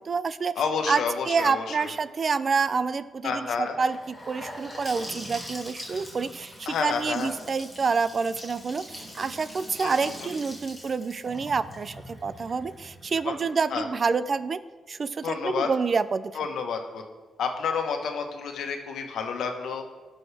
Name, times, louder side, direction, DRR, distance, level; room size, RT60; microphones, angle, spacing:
voice 1, 0.0-0.6 0.9-14.6 14.9-16.3, right 5 dB, 35° right, 14 dB, 0.3 m, -28 dB
voice 2, 0.6-1.9 3.2-3.7 6.7-7.3 9.8-9.9 13.2-13.3 13.7-13.9 15.2-15.7 16.3-17.0 17.4-19.8, left 6 dB, 80° left, 4 dB, 1.2 m, -29 dB
Gurgling / Sink (filling or washing) / Bathtub (filling or washing), 3.9-13.7, equal, 5° left, 2.3 m, -42 dB
17.5 x 6.3 x 3.4 m, 1.3 s
wide cardioid pair, 170°, 0 cm